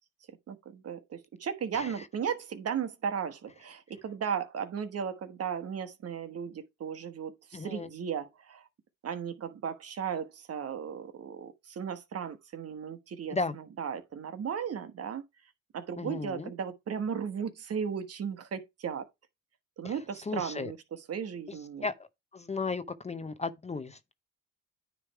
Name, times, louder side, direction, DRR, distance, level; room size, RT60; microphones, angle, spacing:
voice 1, 0.5-8.6 9.0-15.2 15.7-19.0 19.8-20.8 21.1-21.9, right 7 dB, 55° right, 1.2 m, -36 dB
voice 2, 7.5-7.9 13.3-13.5 16.0-16.5 19.8-20.7 21.5-24.1, left 4 dB, 20° left, 0.6 m, -35 dB
9.7 x 3.3 x 4.6 m
cardioid pair, 90°, 30 cm